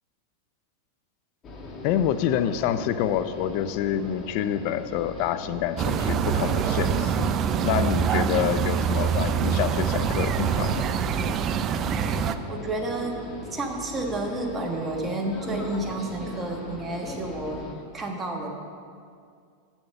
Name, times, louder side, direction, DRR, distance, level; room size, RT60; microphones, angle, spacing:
sound 1, 1.4-17.7, left 2 dB, 30° left, 1.6 m, -39 dB
voice 1, 1.8-7.3 7.6-10.9, left 10 dB, 55° left, 12 dB, 0.5 m, -27 dB
sound 2, 5.8-12.3, right 8 dB, 35° right, 0.4 m, -25 dB
voice 2, 12.5-13.1 13.5-17.6 17.9-18.5, right 2 dB, 15° right, 1 dB, 1.4 m, -30 dB
7.9 x 7.2 x 6.8 m, 2.2 s
hypercardioid pair, 125°, 0 cm